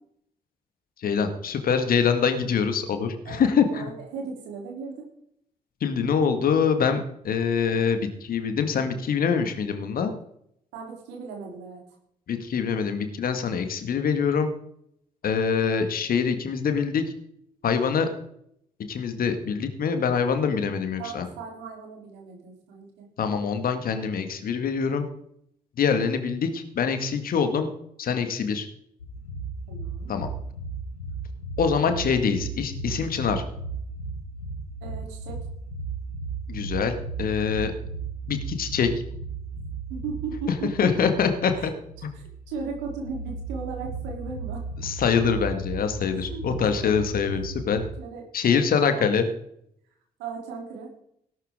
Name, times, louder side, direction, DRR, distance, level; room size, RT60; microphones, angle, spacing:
voice 1, 1.0-3.9 5.8-10.1 12.3-14.5 15.2-17.0 17.6-18.1 18.9-21.3 23.2-25.1 25.8-27.7 28.0-28.7 30.1-30.3 31.6-33.4 36.5-37.7 38.3-38.9 40.8-41.7 44.8-47.8 48.3-49.3, left 6 dB, 50° left, 8 dB, 2.0 m, -24 dB
voice 2, 3.2-5.0 10.7-11.8 21.0-23.1 29.7-30.1 34.8-35.4 39.9-40.9 41.6-41.7 42.1-44.6 46.1-46.4 46.7-47.0 48.0-48.2 48.5-49.1 50.2-50.9, right 5 dB, 70° right, 1 dB, 3.4 m, -37 dB
sound 1, 29.0-47.9, right 3 dB, 85° left, 1.5 m, -35 dB
18.0 x 11.5 x 3.7 m, 0.72 s
figure-of-eight pair, 40°, 19 cm